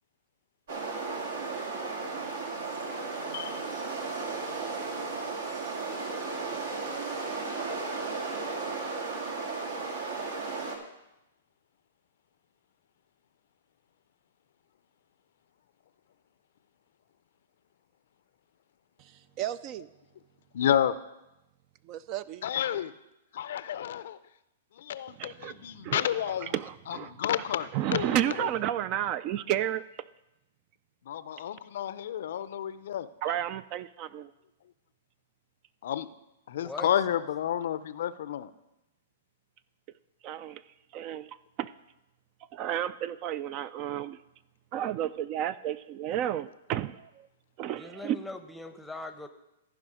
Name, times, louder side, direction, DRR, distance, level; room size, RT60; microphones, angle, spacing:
sound 1, 0.7-10.8, right 4 dB, 70° right, 1.8 m, -34 dB
voice 1, 19.4-19.9 21.9-22.4 25.1-25.6 25.8-27.3 27.7-29.8 33.2-34.3 40.2-40.6 40.9-41.7 42.5-44.2 44.7-47.3 47.6-48.2, right 11 dB, 40° right, 17 dB, 0.3 m, -32 dB
voice 2, 20.5-21.0 22.4-22.9 23.3-24.2 24.8-26.5 26.9-28.1 28.4-28.5 31.1-33.1 35.8-36.1 36.5-38.5, left 10 dB, 65° left, 15 dB, 0.4 m, -30 dB
voice 3, 36.5-36.9 47.7-49.3, left 2 dB, 5° left, 8 dB, 0.8 m, -41 dB
15.0 x 4.9 x 4.9 m, 0.92 s
hypercardioid pair, 130°, 0 cm